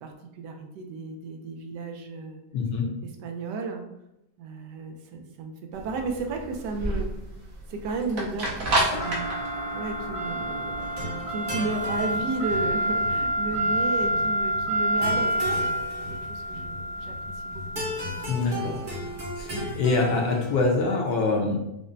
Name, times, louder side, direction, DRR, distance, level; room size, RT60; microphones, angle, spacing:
voice 1, 0.0-2.4 3.2-3.8 4.4-7.2 7.7-9.3 9.7-10.9 11.3-15.9 16.3-17.1 17.4-17.6, right 3 dB, 80° right, 4 dB, 1.2 m, -33 dB
voice 2, 2.5-2.9 18.3-18.8 19.4-21.6, left 3 dB, 70° left, 1 dB, 1.1 m, -25 dB
sound 1, 5.7-19.9, right 1 dB, 60° right, 1.1 m, -28 dB
sound 2, 8.9-14.2, left 1 dB, 45° left, 0.4 m, -40 dB
sound 3, 10.8-20.8, equal, 40° right, 0.8 m, -36 dB
5.0 x 2.0 x 2.6 m, 0.84 s
omnidirectional pair, 1.9 m